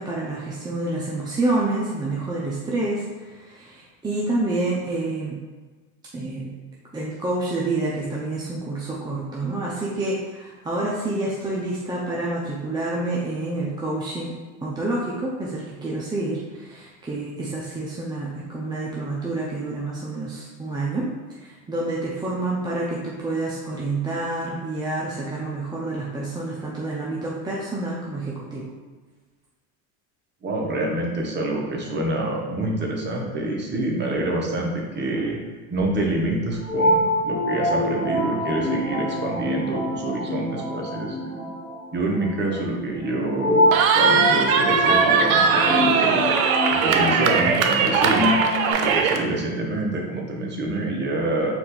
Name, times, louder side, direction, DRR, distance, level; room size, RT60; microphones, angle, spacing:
voice 1, 0.0-5.4 6.1-6.5 6.9-21.1 21.4-28.7, right 2 dB, 10° right, -5 dB, 0.5 m, -28 dB
voice 2, 30.4-35.4 35.7-41.5 41.9-46.3 46.7-48.3 48.8-51.5, right 1 dB, 25° right, -1 dB, 1.0 m, -26 dB
sound 1, 36.2-48.7, left 1 dB, 30° left, 1.2 m, -26 dB
Cheering, 43.7-49.2, right 6 dB, 90° right, 0.6 m, -20 dB
4.4 x 2.6 x 4.1 m, 1.3 s
supercardioid pair, 105°, 41 cm